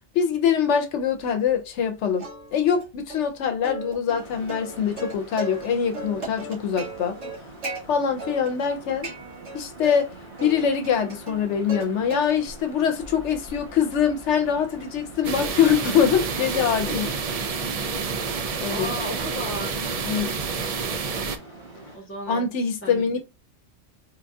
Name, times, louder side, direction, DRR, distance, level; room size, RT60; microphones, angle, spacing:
voice 1, 0.1-2.2 2.5-7.2 7.9-9.1 9.5-10.1 10.4-17.1 18.6-18.9 20.0-20.3 22.3-23.2, left 7 dB, 85° left, 0.9 m, -23 dB
Plucked string instrument, 2.2-2.8 3.1-3.2 3.6-5.7 5.9-7.8 8.2-8.7 9.0-10.0 10.4-11.8 12.1-12.6 13.0-17.2, right 2 dB, 85° right, 2.0 m, -37 dB
sound 1, 4.2-22.0, right 2 dB, 45° right, 1.7 m, -44 dB
sound 2, 15.2-21.4, right 5 dB, 60° right, 0.3 m, -29 dB
voice 2, 16.8-17.2 18.7-19.8 21.9-22.5 22.8-23.2, equal, 10° left, 1.2 m, -34 dB
4.3 x 2.6 x 2.3 m
omnidirectional pair, 1.2 m